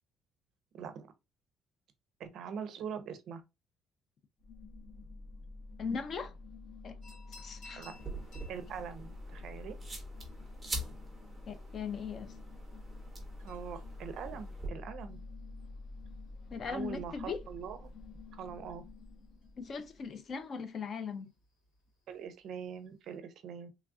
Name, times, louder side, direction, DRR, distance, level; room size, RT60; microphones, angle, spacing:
voice 1, 0.7-1.1 2.2-3.4 7.8-7.9 8.5-9.7 13.4-15.2 16.7-17.8 18.3-18.8 22.1-23.7, right 7 dB, 45° right, 0.5 m, -42 dB
sound 1, 4.4-20.3, left 2 dB, 55° left, 0.7 m, -48 dB
voice 2, 5.8-6.3 6.8-7.0 7.4-7.8 11.5-12.3 16.5-17.4 19.6-21.3, left 5 dB, 30° left, 0.3 m, -39 dB
sound 2, 7.0-23.2, left 2 dB, 90° left, 1.8 m, -63 dB
sound 3, 7.8-14.7, right 1 dB, 10° right, 0.6 m, -45 dB
3.1 x 2.3 x 2.4 m
cardioid pair, 175°, 0 cm